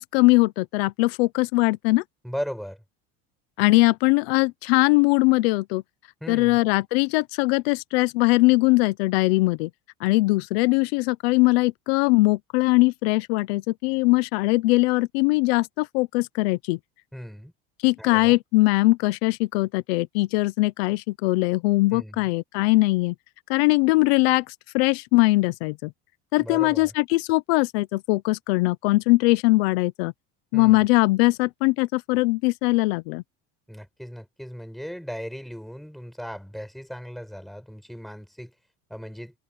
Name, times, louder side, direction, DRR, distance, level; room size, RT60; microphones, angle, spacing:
voice 1, 0.0-2.0 3.6-5.8 6.3-9.7 10.0-16.8 17.8-23.1 23.5-25.9 26.3-30.1 30.5-33.2, left 22 dB, 90° left, 0.8 m, -21 dB
voice 2, 2.2-2.8 6.2-6.6 17.1-17.5 18.0-18.4 21.9-22.3 26.4-26.9 30.5-30.9 33.7-38.5 38.9-39.3, equal, ahead, 7.9 m, -37 dB
cardioid pair, 175°, 30 cm